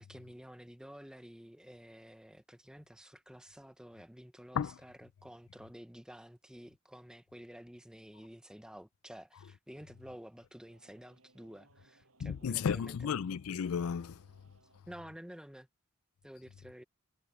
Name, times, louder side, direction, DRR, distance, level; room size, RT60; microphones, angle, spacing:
voice 1, 0.0-13.0 14.9-15.7 16.2-16.8, equal, 5° right, 0.8 m, -51 dB
sound 1, 9.7-14.8, right 2 dB, 70° right, 6.0 m, -68 dB
voice 2, 12.2-14.2, left 7 dB, 75° left, 0.4 m, -33 dB
head